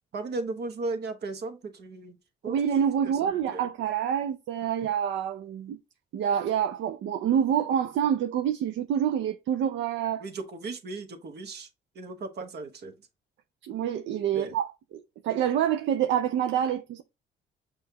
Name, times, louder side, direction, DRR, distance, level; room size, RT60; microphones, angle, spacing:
voice 1, 0.1-2.2 2.4-2.5 3.0-3.6 10.2-11.7 11.9-12.9 14.3-14.6, right 3 dB, 55° right, 1.0 m, -36 dB
voice 2, 2.5-5.8 6.1-10.2 13.7-17.0, right 9 dB, 70° right, 0.4 m, -27 dB
6.2 x 2.4 x 2.8 m
cardioid pair, 90°, 20 cm